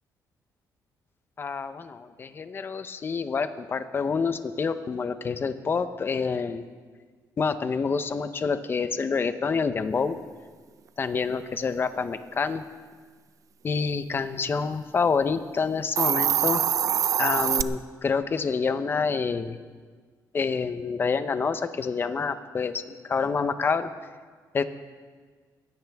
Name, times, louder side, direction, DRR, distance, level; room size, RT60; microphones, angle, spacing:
voice 1, 1.4-6.7 7.4-10.2 11.0-12.6 13.6-16.6 17.2-19.6 20.3-23.9 24.5-24.6, left 5 dB, 30° left, 11 dB, 0.8 m, -27 dB
Hiss, 15.8-17.6, right 9 dB, 50° right, 0.5 m, -24 dB
21.0 x 16.5 x 3.6 m, 1.6 s
cardioid pair, 145°, 7 cm